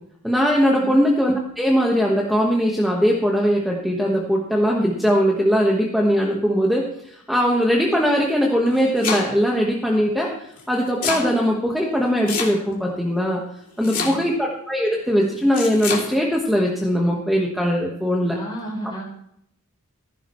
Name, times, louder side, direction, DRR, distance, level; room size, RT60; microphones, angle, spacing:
voice 1, 0.2-6.8 7.3-10.3 10.7-13.4 13.8-18.3, equal, ahead, -2 dB, 1.4 m, -20 dB
Domestic sounds home sounds, 8.5-9.5 10.6-11.3 12.3-12.9 13.8-14.5 15.5-16.1, left 5 dB, 40° left, 3.2 m, -26 dB
voice 2, 13.8-14.3 18.3-19.0, right 1 dB, 20° left, -3 dB, 6.5 m, -33 dB
16.0 x 15.0 x 3.2 m, 0.73 s
head